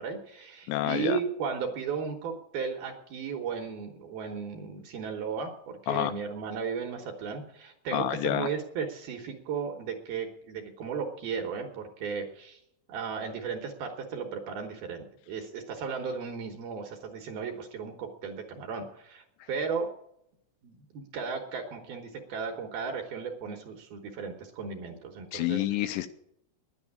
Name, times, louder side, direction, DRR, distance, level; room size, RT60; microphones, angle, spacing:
voice 1, 0.0-12.6 12.9-19.9 20.6-25.6, right 6 dB, 70° right, 3 dB, 2.5 m, -35 dB
voice 2, 0.7-1.2 5.9-6.1 7.9-8.5 25.3-26.1, left 14 dB, 80° left, 9 dB, 2.7 m, -28 dB
10.5 x 9.7 x 8.6 m, 0.76 s
omnidirectional pair, 5.5 m